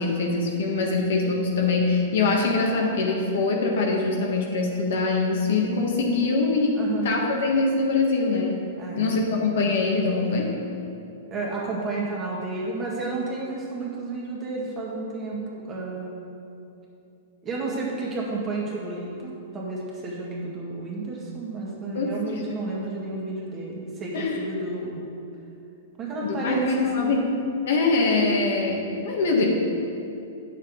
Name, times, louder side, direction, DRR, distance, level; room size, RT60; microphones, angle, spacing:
voice 1, 0.0-6.8 7.0-8.6 8.9-10.5 21.9-22.1 24.1-24.4 26.2-27.3 27.7-29.5, left 3 dB, 70° left, 0 dB, 1.5 m, -23 dB
voice 2, 6.7-7.1 8.8-9.2 11.3-16.3 17.4-25.0 26.0-27.2, right 3 dB, 25° right, -4 dB, 1.8 m, -31 dB
9.1 x 6.5 x 3.9 m, 2.7 s
hypercardioid pair, 135°, 0 cm